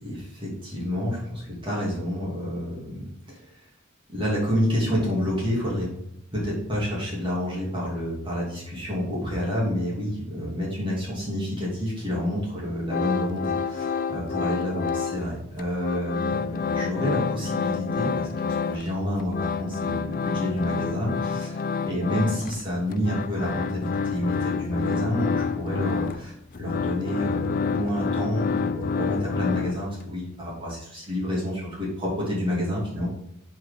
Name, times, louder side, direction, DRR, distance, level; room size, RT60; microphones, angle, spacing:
voice 1, 0.0-3.4 4.1-5.9 6.3-33.1, equal, 25° right, -6 dB, 2.8 m, -29 dB
sound 1, 12.9-15.3 15.6-18.9 19.2-30.1, left 5 dB, 45° left, 0.4 m, -28 dB
7.0 x 4.6 x 5.2 m, 0.78 s
head